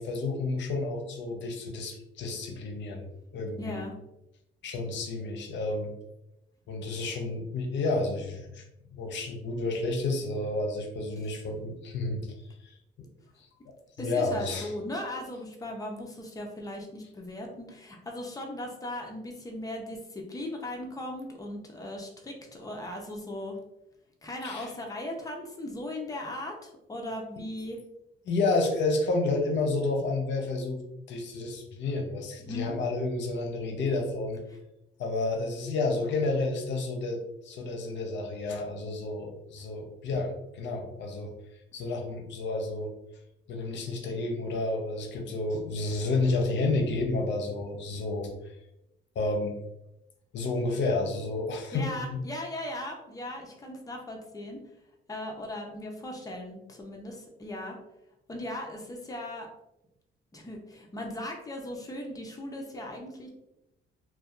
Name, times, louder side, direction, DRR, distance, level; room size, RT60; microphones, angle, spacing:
voice 1, 0.0-3.0 3.3-3.8 4.6-5.9 6.7-8.6 8.9-12.2 12.6-12.7 14.0-14.7 24.4-24.7 28.3-30.8 31.1-34.4 35.0-41.3 41.7-42.9 43.5-48.3 49.2-49.5 50.3-52.2, left 3 dB, 65° left, 3 dB, 0.6 m, -30 dB
voice 2, 3.6-3.9 14.0-23.6 24.2-27.8 32.4-32.7 34.5-34.6 51.7-54.6 55.1-57.8 58.3-59.5 60.3-63.3, left 1 dB, 20° left, 1 dB, 0.6 m, -38 dB
2.6 x 2.2 x 2.3 m, 0.88 s
cardioid pair, 90°, 20 cm